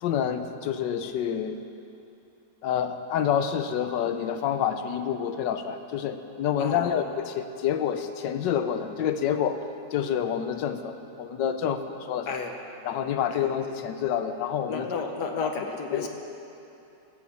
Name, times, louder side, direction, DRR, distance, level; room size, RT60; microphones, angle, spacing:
voice 1, 0.0-1.7 2.6-9.6 9.9-12.4 12.8-14.9 15.9-16.1, left 8 dB, 85° left, 9 dB, 1.4 m, -28 dB
voice 2, 6.6-7.0 12.3-12.6 13.3-13.5 14.7-16.1, left 5 dB, 70° left, 4 dB, 1.5 m, -32 dB
15.5 x 7.2 x 7.1 m, 2.8 s
omnidirectional pair, 1.9 m